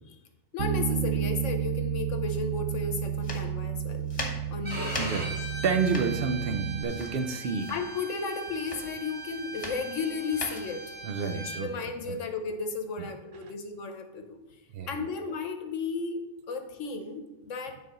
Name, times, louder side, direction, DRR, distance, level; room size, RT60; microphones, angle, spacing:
voice 1, 0.5-4.1 4.5-4.9 7.7-10.9 11.3-14.4 14.9-17.8, left 4 dB, 85° left, 6 dB, 1.3 m, -34 dB
Bass guitar, 0.6-6.8, right 9 dB, 85° right, 1.0 m, -31 dB
sound 1, 3.1-12.4, left 2 dB, 30° left, 1.4 m, -41 dB
Bowed string instrument, 4.6-11.6, right 2 dB, 15° right, 2.1 m, -39 dB
voice 2, 5.0-5.3 5.6-7.7 11.0-12.2 13.0-13.1 14.7-14.9, right 5 dB, 55° right, 7 dB, 0.8 m, -30 dB
9.7 x 4.2 x 5.3 m, 1.0 s
omnidirectional pair, 1.3 m